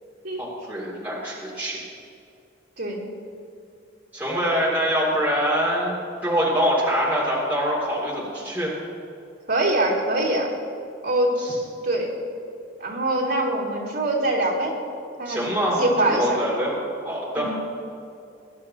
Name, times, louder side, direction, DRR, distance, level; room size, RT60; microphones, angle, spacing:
voice 1, 0.4-1.8 4.1-6.0 6.2-8.7 11.4-11.6 15.2-16.7 17.0-17.7, equal, 10° right, -7 dB, 2.5 m, -24 dB
voice 2, 9.5-10.5 11.0-11.4 11.8-12.1 12.8-14.8 15.2-16.4 17.4-17.5, right 1 dB, 60° right, -5 dB, 3.1 m, -23 dB
21.5 x 11.5 x 2.8 m, 2.6 s
head